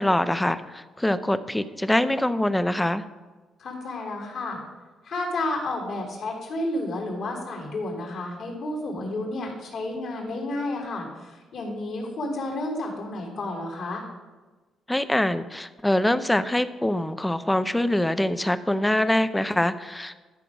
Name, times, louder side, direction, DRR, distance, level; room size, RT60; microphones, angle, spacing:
voice 1, 0.0-3.0 14.9-20.1, left 1 dB, 10° left, 12 dB, 0.6 m, -24 dB
voice 2, 3.6-4.6 5.0-14.0, left 2 dB, 65° left, -1 dB, 3.4 m, -31 dB
13.0 x 4.9 x 6.3 m, 1.3 s
cardioid pair, 90°, 0 cm